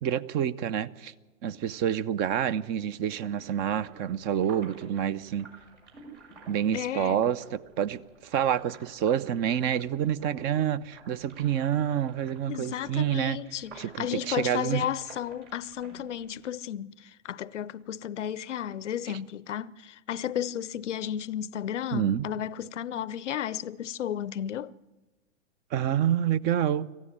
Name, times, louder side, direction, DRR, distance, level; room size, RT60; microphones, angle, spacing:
voice 1, 0.0-1.1 1.4-5.5 6.5-13.4 13.8-14.8 19.1-19.2 21.9-22.2 25.7-26.9, right 9 dB, 25° right, 0.6 m, -28 dB
sound 1, 3.1-16.4, right 3 dB, 65° right, 6.9 m, -52 dB
voice 2, 6.7-7.2 12.5-24.7, left 10 dB, 70° left, 0.7 m, -33 dB
25.5 x 15.0 x 9.2 m
figure-of-eight pair, 105°, 37 cm